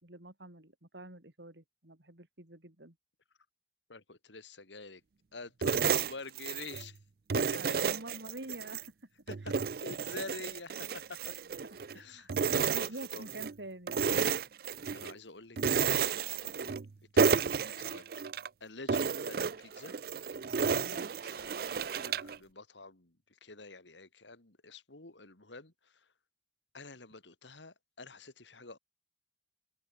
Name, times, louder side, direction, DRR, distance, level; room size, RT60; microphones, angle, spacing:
voice 1, 0.0-3.0 7.6-8.9 11.7-14.0 20.7-21.1, right 1 dB, 70° right, 3.4 m, -47 dB
voice 2, 3.9-5.0 5.3-7.0 7.3-7.4 8.6-8.7 9.3-11.2 11.9-13.3 14.9-16.8 17.1-18.0 18.6-20.0 20.7-26.1 26.7-28.8, left 3 dB, 80° left, 2.8 m, -48 dB
sound 1, 5.6-6.9 7.3-8.9 9.3-12.0 12.3-13.5 13.9-15.1 15.6-16.9 17.2-18.5 18.9-22.4, right 6 dB, 55° right, 0.5 m, -32 dB
open air
head